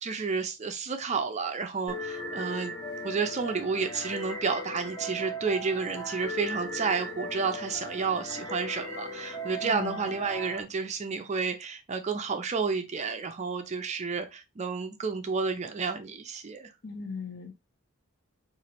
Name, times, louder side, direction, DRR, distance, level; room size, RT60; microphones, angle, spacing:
voice 1, 0.0-2.7 3.0-16.7, right 5 dB, 30° right, 0.4 m, -31 dB
sound 1, 1.9-10.6, equal, 15° left, 0.9 m, -38 dB
voice 2, 9.6-10.1 16.8-17.6, left 4 dB, 50° left, 0.7 m, -39 dB
4.3 x 2.5 x 3.0 m
head